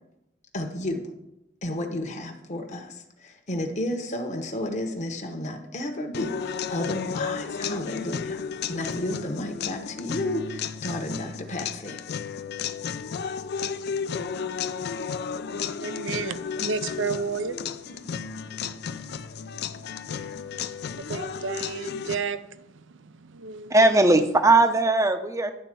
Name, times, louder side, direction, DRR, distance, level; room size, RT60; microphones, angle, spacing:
voice 1, 0.5-1.0 1.6-3.0 3.2-8.4 8.7-12.0, left 1 dB, 40° left, 1.0 m, -32 dB
sound 1, 6.1-22.2, left 6 dB, 60° left, 0.4 m, -33 dB
voice 2, 15.8-23.7 24.1-24.2, right 5 dB, 75° right, 0.5 m, -34 dB
voice 3, 23.7-25.5, right 2 dB, 15° right, 0.6 m, -19 dB
11.0 x 4.1 x 7.6 m
head